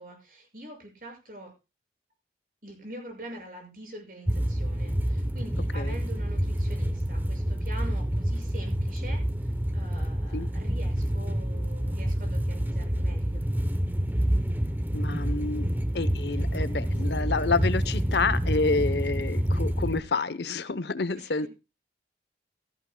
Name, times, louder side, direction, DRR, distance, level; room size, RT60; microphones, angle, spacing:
voice 1, 0.0-1.5 2.6-13.4 21.1-21.4, right 1 dB, 50° right, 3 dB, 6.1 m, -44 dB
sound 1, 4.3-20.0, equal, 10° right, 0.7 m, -28 dB
voice 2, 14.9-21.5, left 3 dB, 75° left, 16 dB, 0.8 m, -29 dB
16.0 x 14.5 x 2.2 m, 0.28 s
head